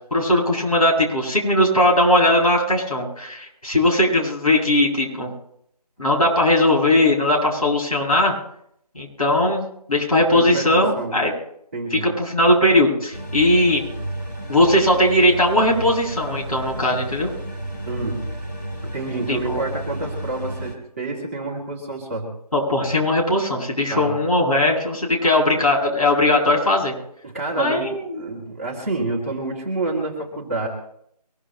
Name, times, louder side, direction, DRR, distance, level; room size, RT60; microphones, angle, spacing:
voice 1, 0.1-5.3 6.0-8.4 8.9-11.3 11.9-13.8 14.5-17.3 19.3-19.6 22.5-26.9 27.6-28.2, left 1 dB, 60° left, -2 dB, 7.7 m, -19 dB
voice 2, 10.3-11.1 11.7-12.1 17.8-18.2 18.8-22.3 23.9-24.2 27.2-30.7, right 2 dB, 20° right, -3 dB, 2.5 m, -28 dB
sound 1, 13.1-20.8, right 1 dB, 25° left, 2.1 m, -32 dB
23.5 x 22.0 x 2.2 m, 0.71 s
figure-of-eight pair, 165°, 21 cm